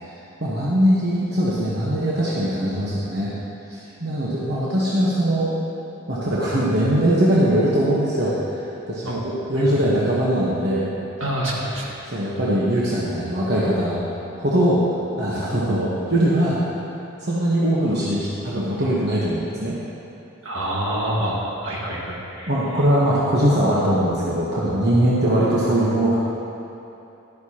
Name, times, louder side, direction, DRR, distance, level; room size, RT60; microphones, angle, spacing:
voice 1, 0.4-3.3 3.7-5.5 6.1-10.9 12.1-14.0 14.4-14.8 15.2-16.6 17.2-19.8 22.5-26.2, right 1 dB, 50° right, -7 dB, 1.2 m, -21 dB
voice 2, 11.2-12.0 20.4-22.6, right 1 dB, 70° right, -3 dB, 1.7 m, -27 dB
12.0 x 11.0 x 2.9 m, 2.9 s
head